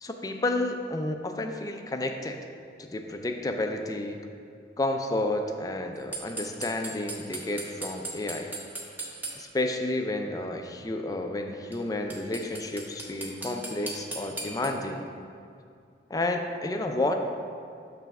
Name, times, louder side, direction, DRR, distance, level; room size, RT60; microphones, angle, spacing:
voice 1, 0.0-2.4 2.8-4.2 4.8-8.5 9.4-15.0 16.1-17.1, left 2 dB, 20° left, 4 dB, 0.4 m, -31 dB
sound 1, 6.1-9.3 11.7-11.8 12.1-14.7, right 2 dB, 10° right, 0.8 m, -35 dB
7.1 x 3.3 x 5.9 m, 2.4 s
head